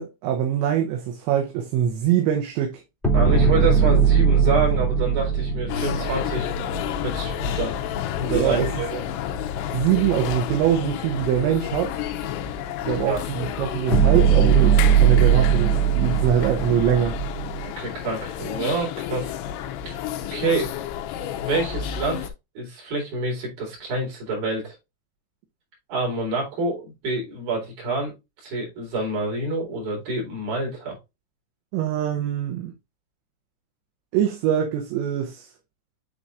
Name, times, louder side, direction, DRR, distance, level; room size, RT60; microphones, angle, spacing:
voice 1, 0.0-2.8 8.3-8.8 9.7-12.0 12.9-17.2 31.7-32.7 34.1-35.5, right 9 dB, 80° right, 3.2 m, -23 dB
sound 1, 3.0-7.3 13.9-17.7, right 7 dB, ahead, 0.8 m, -19 dB
voice 2, 3.1-6.5 7.0-7.7 8.2-9.0 13.1-13.2 17.6-19.3 19.9-20.0 20.3-20.7 21.4-22.2 22.6-24.8 25.9-28.1 28.4-31.0, right 2 dB, 50° right, 5.3 m, -27 dB
sound 2, 5.7-22.3, left 9 dB, 80° left, 3.1 m, -30 dB
9.9 x 4.2 x 2.5 m
omnidirectional pair, 5.2 m